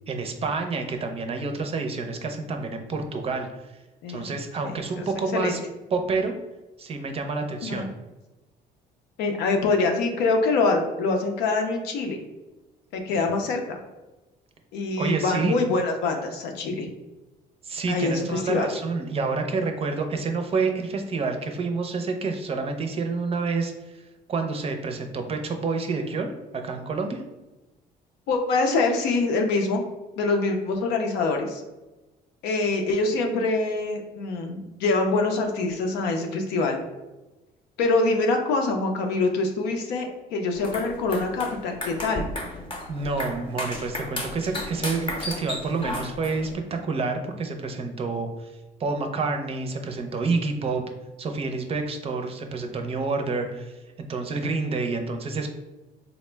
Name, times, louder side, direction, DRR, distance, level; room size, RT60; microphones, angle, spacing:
voice 1, 0.1-3.7 4.1-5.6 5.9-6.3 6.8-7.9 13.2-13.3 15.0-15.6 17.6-24.0 24.3-27.2 42.9-48.5 48.8-50.8 51.2-55.5, right 4 dB, 35° right, 5 dB, 0.5 m, -28 dB
voice 2, 4.0-4.3 4.6-5.1 5.3-5.6 7.6-7.9 9.2-12.2 12.9-13.8 14.7-16.9 17.9-18.7 28.3-29.8 30.2-31.6 32.4-36.8 37.8-42.2, left 3 dB, 90° left, 3 dB, 0.6 m, -25 dB
sound 1, 40.5-46.5, left 1 dB, 30° left, 0.7 m, -34 dB
4.0 x 2.1 x 3.3 m, 1.1 s
cardioid pair, 110°, 17 cm